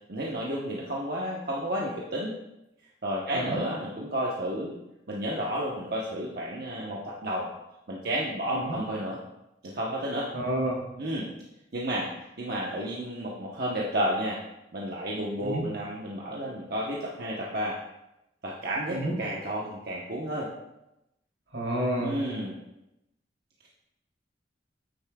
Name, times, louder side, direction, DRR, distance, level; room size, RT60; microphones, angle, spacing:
voice 1, 0.1-2.3 3.0-4.8 5.1-7.5 7.9-9.2 9.6-10.3 11.0-11.3 11.7-14.4 14.7-17.8 18.4-20.5 22.0-22.6, equal, 60° right, -4 dB, 1.0 m, -31 dB
voice 2, 3.3-3.6 8.5-8.8 10.3-10.8 15.4-15.6 18.9-19.1 21.5-22.2, right 1 dB, 85° right, -3 dB, 2.9 m, -30 dB
9.3 x 8.3 x 2.3 m, 0.91 s
head